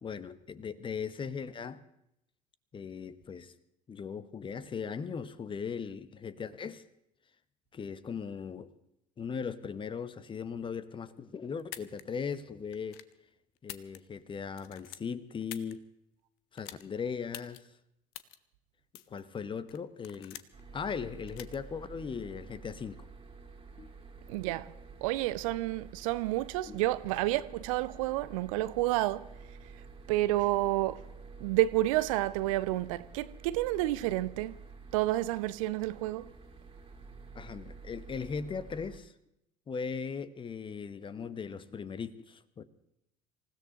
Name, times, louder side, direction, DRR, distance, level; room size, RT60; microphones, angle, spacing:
voice 1, 0.0-1.8 2.7-3.5 3.9-6.8 7.7-8.7 9.2-13.0 13.6-15.8 16.5-17.7 19.1-20.4 20.7-23.1 23.8-23.9 26.7-26.8 37.3-39.1 39.7-42.6, left 6 dB, 25° left, 1.0 m, -38 dB
sound 1, 11.6-12.0 12.7-13.1 13.6-14.3 14.5-15.7 16.6-16.8 17.3-17.6 18.1-18.4 18.9-19.2 19.7-20.6 21.3-21.6, left 14 dB, 55° left, 0.8 m, -46 dB
sound 2, 20.5-39.0, right 4 dB, 25° right, 2.5 m, -50 dB
voice 2, 24.3-24.7 25.0-29.2 30.1-31.0 31.4-34.6 34.9-36.2, right 16 dB, 60° right, 0.6 m, -30 dB
27.0 x 16.0 x 2.9 m
figure-of-eight pair, 60°, 19 cm